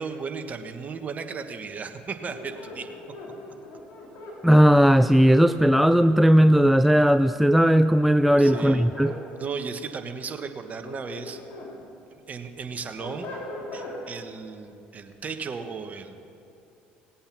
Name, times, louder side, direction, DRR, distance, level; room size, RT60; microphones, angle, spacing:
voice 1, 0.0-2.9 8.4-8.9 9.3-11.4 12.1-13.3 13.7-16.2, right 5 dB, 35° right, 6 dB, 1.3 m, -35 dB
sound 1, 2.3-4.4 5.7-6.8 7.9-9.2 10.6-11.7 12.2-14.0, left 2 dB, 50° left, 3.9 m, -40 dB
voice 2, 4.4-9.1, equal, ahead, 12 dB, 0.3 m, -17 dB
18.5 x 8.6 x 6.1 m, 2.7 s
hypercardioid pair, 70°, 5 cm